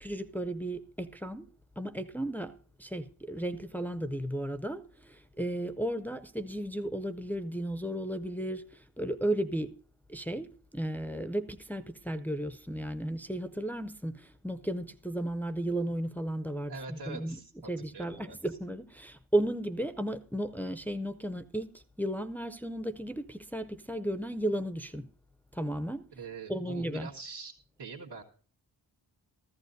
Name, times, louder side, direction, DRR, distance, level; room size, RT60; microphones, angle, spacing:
voice 1, 0.0-9.8 10.1-17.4 17.7-25.1 25.5-26.1 26.5-27.1, right 1 dB, 5° left, 0.4 m, -34 dB
voice 2, 16.7-18.4 26.1-27.5 27.8-28.2, right 4 dB, 80° right, 1.8 m, -44 dB
14.5 x 14.0 x 2.6 m
wide cardioid pair, 175°, 41 cm